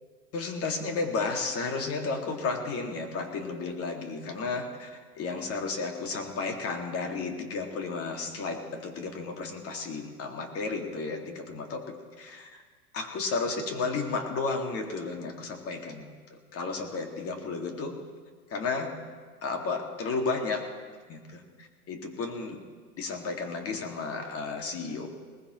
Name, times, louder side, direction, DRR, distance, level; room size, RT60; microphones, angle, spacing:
voice 1, 0.3-12.6 12.9-18.0 18.5-18.9 19.4-20.7 21.1-22.6 23.0-25.1, left 4 dB, 30° left, 3 dB, 2.5 m, -33 dB
21.0 x 19.5 x 3.2 m, 1.5 s
hypercardioid pair, 105°, 46 cm